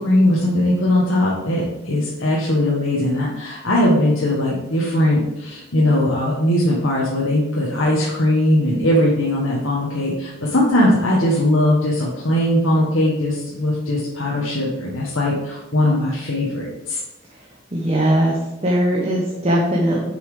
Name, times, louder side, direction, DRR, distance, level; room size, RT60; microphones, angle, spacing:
voice 1, 0.0-17.0, left 1 dB, 80° left, -5 dB, 1.5 m, -19 dB
voice 2, 17.7-18.4 18.6-20.1, right 1 dB, 30° right, -2 dB, 1.2 m, -19 dB
7.2 x 6.0 x 5.0 m, 0.97 s
head